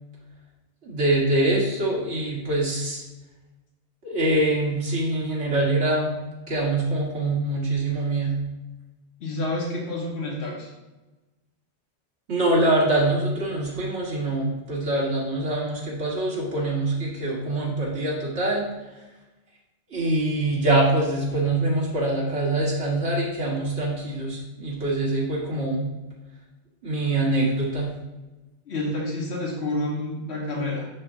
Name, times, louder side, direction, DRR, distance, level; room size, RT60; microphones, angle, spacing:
voice 1, 0.8-3.0 4.0-6.2 6.5-8.4 12.3-18.7 19.9-25.9 26.8-27.9, right 2 dB, 75° right, -4 dB, 1.7 m, -24 dB
voice 2, 9.2-10.7 28.7-30.9, left 2 dB, 70° left, -2 dB, 1.6 m, -29 dB
6.2 x 5.8 x 2.7 m, 1.1 s
omnidirectional pair, 1.2 m